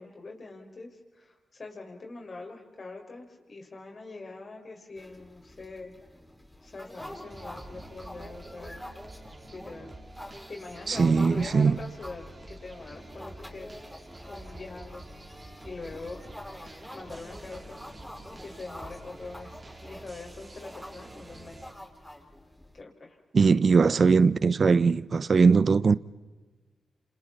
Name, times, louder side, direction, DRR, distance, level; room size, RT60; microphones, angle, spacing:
voice 1, 0.0-5.9 6.6-8.8 9.5-9.9 10.5-13.7 14.3-15.0 15.6-16.2 16.9-17.9 18.4-21.7 22.7-23.2, left 3 dB, 50° left, 5.6 m, -43 dB
sound 1, 5.0-22.8, left 1 dB, 5° left, 7.0 m, -47 dB
sound 2, 7.0-21.7, right 1 dB, 35° right, 3.6 m, -47 dB
voice 2, 10.9-11.8 23.3-25.9, right 5 dB, 55° right, 0.7 m, -20 dB
29.5 x 27.5 x 4.3 m
supercardioid pair, 40°, 0 cm